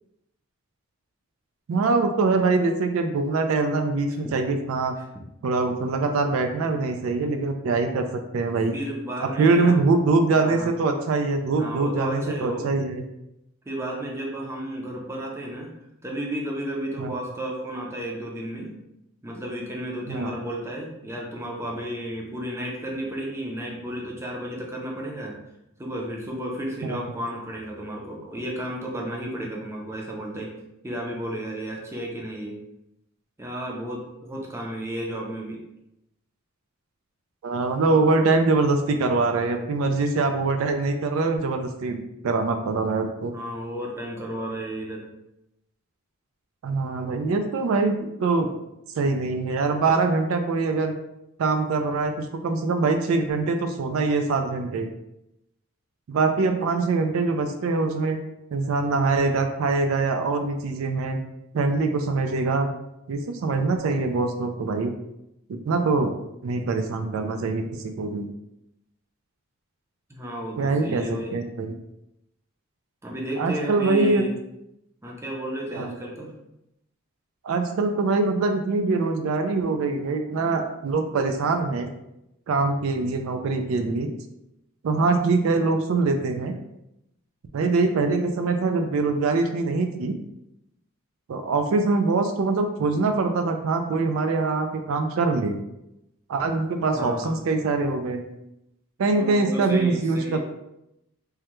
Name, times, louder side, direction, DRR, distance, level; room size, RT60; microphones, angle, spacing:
voice 1, 1.7-5.0 5.4-8.7 9.2-13.0 17.0-17.1 20.1-20.3 26.8-27.0 37.4-43.3 46.6-48.5 49.0-50.9 51.4-54.9 56.1-58.2 58.5-61.2 61.5-62.7 63.1-64.9 65.5-66.1 66.4-68.3 70.6-71.1 71.3-71.7 73.4-74.2 75.7-75.9 77.4-81.9 82.5-84.1 84.8-86.6 87.5-90.2 91.3-95.6 96.3-98.4 99.0-100.4, right 3 dB, 70° right, 6 dB, 0.3 m, -23 dB
voice 2, 8.7-9.8 10.3-10.7 11.6-12.7 13.7-15.7 16.0-18.7 19.2-25.4 25.8-30.5 30.8-32.6 33.4-35.6 43.2-45.0 70.1-71.4 73.0-74.3 75.0-76.3 96.9-97.3 99.1-100.4, right 1 dB, 15° right, -2 dB, 0.5 m, -32 dB
3.5 x 2.1 x 2.9 m, 0.85 s
head